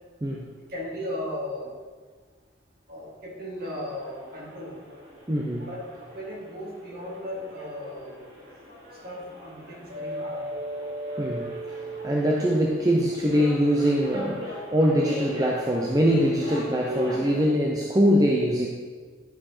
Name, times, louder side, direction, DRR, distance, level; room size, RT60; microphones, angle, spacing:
voice 1, 0.7-1.7 2.9-4.7 5.7-5.8 6.1-8.2 9.0-10.5, left 1 dB, 50° right, -6 dB, 2.8 m, -36 dB
sound 1, 3.6-17.5, equal, 75° right, 2.7 m, -38 dB
voice 2, 5.3-5.7 11.2-11.5 12.0-18.7, equal, 20° right, -1 dB, 0.6 m, -23 dB
10.5 x 5.3 x 4.2 m, 1.5 s
head